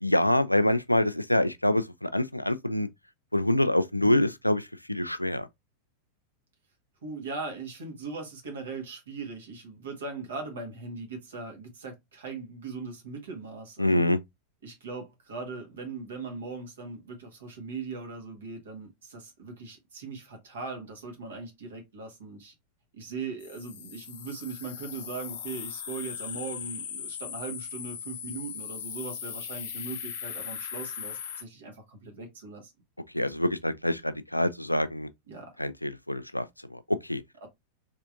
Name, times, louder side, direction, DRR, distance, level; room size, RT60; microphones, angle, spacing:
voice 1, 0.0-2.9 3.3-5.5 13.8-14.2 33.1-35.1 35.6-37.2, left 1 dB, 90° left, 0.3 m, -26 dB
voice 2, 7.0-14.0 14.6-22.5 22.9-32.7 35.3-35.5 37.4-37.5, right 4 dB, 65° right, 1.6 m, -39 dB
sound 1, 23.4-31.4, left 8 dB, 55° left, 0.7 m, -39 dB
3.6 x 3.2 x 2.5 m
figure-of-eight pair, 90°, 0 cm